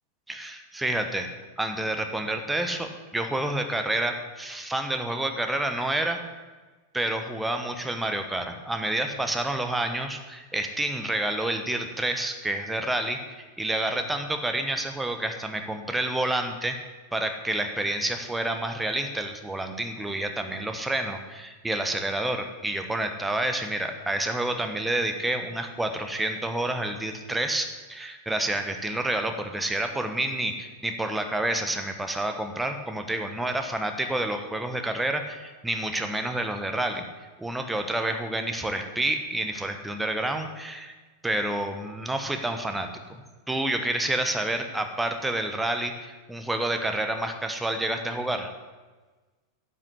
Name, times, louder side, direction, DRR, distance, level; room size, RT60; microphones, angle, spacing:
voice 1, 0.3-1.3 1.6-6.2 6.9-16.8 17.1-37.1 37.4-40.9 41.2-43.2 43.5-48.5, right 1 dB, 5° right, 6 dB, 1.1 m, -29 dB
10.5 x 5.6 x 8.4 m, 1.3 s
figure-of-eight pair, 90°, 0 cm